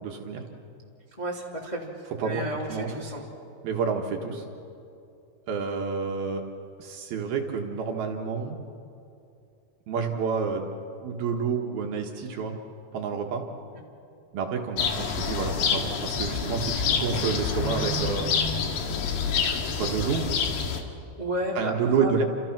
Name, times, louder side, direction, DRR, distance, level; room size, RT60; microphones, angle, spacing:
voice 1, 0.0-0.4 2.2-2.4 2.7-3.0 3.6-4.4 5.5-6.4 6.8-8.6 9.9-10.7 11.0-12.6 12.9-13.4 14.3-18.3 19.6-20.3 21.6-22.2, right 5 dB, 65° right, 2 dB, 3.1 m, -29 dB
voice 2, 1.2-1.9 2.2-3.2 13.7-13.8 21.2-22.2, right 1 dB, 10° left, -2 dB, 2.3 m, -32 dB
sound 1, 14.8-20.8, left 5 dB, 65° left, 3.6 m, -27 dB
30.0 x 27.5 x 6.0 m, 2.6 s
omnidirectional pair, 5.1 m